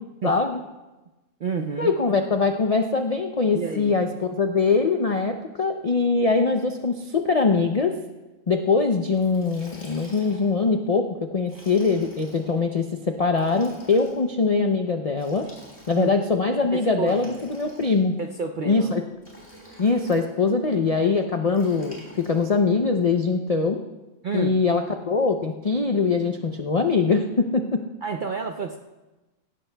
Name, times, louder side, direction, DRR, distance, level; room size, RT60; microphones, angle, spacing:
voice 1, 0.2-0.6 1.8-7.9 8.5-15.5 15.9-18.1 18.7-19.0 19.8-23.8 24.3-27.8, left 4 dB, 55° left, 4 dB, 0.4 m, -22 dB
voice 2, 1.4-1.9 3.5-4.0 15.9-16.1 16.7-17.3 18.2-19.0 24.2-24.6 28.0-28.8, right 5 dB, 60° right, 5 dB, 0.5 m, -29 dB
Liquid, 9.1-10.6 11.4-12.5 13.3-14.2 15.1-16.2 17.0-18.2 19.2-20.3 21.5-22.5, equal, 25° left, 4.2 m, -48 dB
17.5 x 16.0 x 2.2 m, 1.1 s
omnidirectional pair, 1.5 m